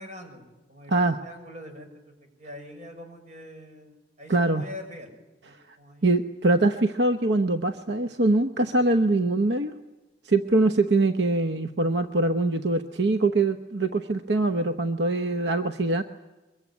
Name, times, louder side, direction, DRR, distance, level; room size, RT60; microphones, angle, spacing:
voice 1, 0.0-5.1 5.4-6.1, left 1 dB, 40° right, 4 dB, 5.9 m, -44 dB
voice 2, 0.9-1.2 4.3-4.6 6.0-9.7 10.2-16.0, right 2 dB, 75° right, 8 dB, 1.0 m, -23 dB
23.5 x 23.0 x 9.5 m, 1.1 s
head